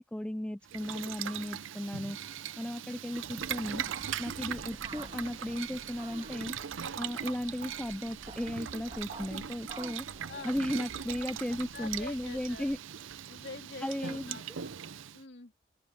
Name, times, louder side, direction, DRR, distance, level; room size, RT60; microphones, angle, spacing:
voice 1, 0.0-2.2 2.6-3.8 4.2-6.5 7.0-10.1 10.4-12.8 13.8-14.4, left 1 dB, 5° left, 0.3 m, -35 dB
Boiling, 0.6-15.2, right 8 dB, 75° right, 0.6 m, -40 dB
sound 1, 1.6-12.6 12.9-13.4, left 5 dB, 30° left, 5.9 m, -69 dB
sound 2, 3.4-12.8, right 2 dB, 25° right, 1.5 m, -51 dB
voice 2, 10.3-12.7 13.3-14.7 15.1-15.5, left 3 dB, 55° left, 2.3 m, -46 dB
open air
head